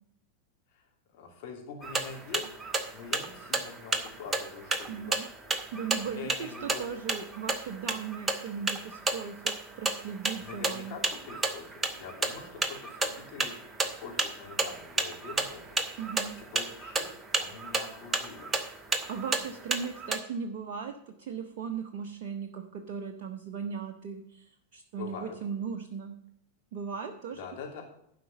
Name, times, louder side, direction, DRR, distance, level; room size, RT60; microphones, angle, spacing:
voice 1, 1.1-5.2 6.0-6.8 10.4-15.8 16.4-18.5 25.0-25.4 27.4-27.8, left 5 dB, 45° left, 0 dB, 2.9 m, -44 dB
sound 1, 1.8-20.2, right 3 dB, 15° right, 0.9 m, -33 dB
voice 2, 4.9-5.3 5.7-10.9 16.0-16.3 19.1-26.2 26.7-27.4, right 6 dB, 45° right, 4 dB, 0.8 m, -38 dB
11.5 x 5.1 x 6.8 m, 0.72 s
figure-of-eight pair, 90°, 0 cm